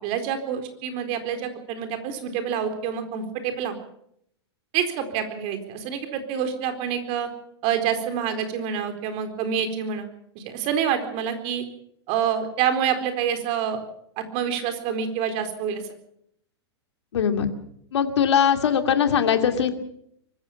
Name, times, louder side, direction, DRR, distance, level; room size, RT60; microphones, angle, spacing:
voice 1, 0.0-3.8 4.7-7.3 7.6-10.1 10.4-11.7 12.1-13.8 14.2-15.8, right 8 dB, 45° right, 7 dB, 4.1 m, -27 dB
voice 2, 17.1-17.5 17.9-19.8, left 8 dB, 75° left, 7 dB, 2.5 m, -21 dB
24.0 x 15.0 x 7.2 m, 0.71 s
hypercardioid pair, 120°, 14 cm